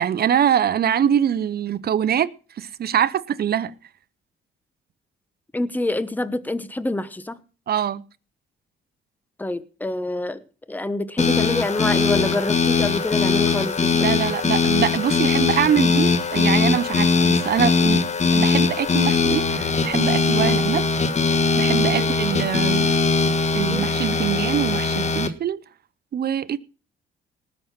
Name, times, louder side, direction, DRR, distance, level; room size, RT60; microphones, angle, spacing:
voice 1, 0.0-2.3 2.6-3.7 7.7-8.0 13.9-18.0 18.3-20.9 21.6-22.9 23.5-25.6 26.1-26.6, right 9 dB, 55° right, 0.8 m, -23 dB
voice 2, 5.5-7.4 9.4-10.4 10.7-14.1 20.4-20.5 22.0-22.1 23.7-23.9, left 2 dB, 10° left, 1.0 m, -26 dB
sound 1, 11.2-25.3, left 4 dB, 35° left, 1.4 m, -20 dB
19.0 x 6.6 x 5.8 m
cardioid pair, 90°, 20 cm